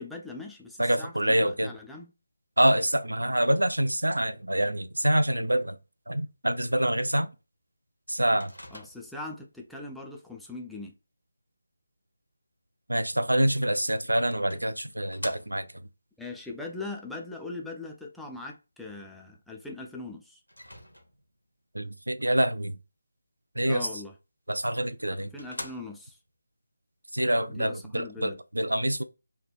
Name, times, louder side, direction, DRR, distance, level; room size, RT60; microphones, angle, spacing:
voice 1, 0.0-2.1 8.7-10.9 16.2-20.4 23.7-24.1 25.2-26.2 27.5-28.4, left 3 dB, ahead, 0.3 m, -40 dB
voice 2, 0.8-1.7 2.6-5.8 6.1-7.3 8.1-8.5 12.9-15.7 21.7-22.8 23.6-23.9 24.5-25.3 27.1-29.0, right 1 dB, 75° right, 0.3 m, -26 dB
Microwave oven, 8.4-9.3 13.7-13.8 14.5-15.9 20.5-21.4 24.5-24.6 25.0-25.1 25.4-26.3, equal, 90° left, 0.7 m, -44 dB
3.2 x 2.1 x 2.3 m
figure-of-eight pair, 155°, 0 cm